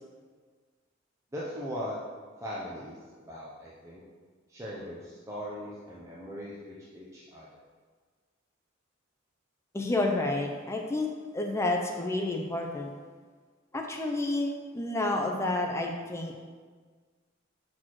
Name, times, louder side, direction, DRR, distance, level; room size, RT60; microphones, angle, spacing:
voice 1, 1.3-2.0 2.4-4.0 4.5-7.5, equal, 15° right, -7 dB, 0.8 m, -39 dB
voice 2, 9.7-11.1 11.3-12.9 13.7-16.3, left 2 dB, 15° left, 2 dB, 0.5 m, -30 dB
6.1 x 4.3 x 4.7 m, 1.5 s
head